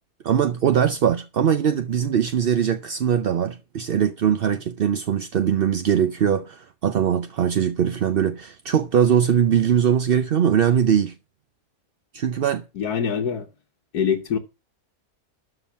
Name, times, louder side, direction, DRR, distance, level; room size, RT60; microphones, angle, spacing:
voice 1, 0.2-11.1 12.1-12.6, right 8 dB, 55° right, 0.6 m, -21 dB
voice 2, 12.8-13.5 13.9-14.4, left 7 dB, 85° left, 1.6 m, -24 dB
13.0 x 5.9 x 5.7 m
omnidirectional pair, 1.6 m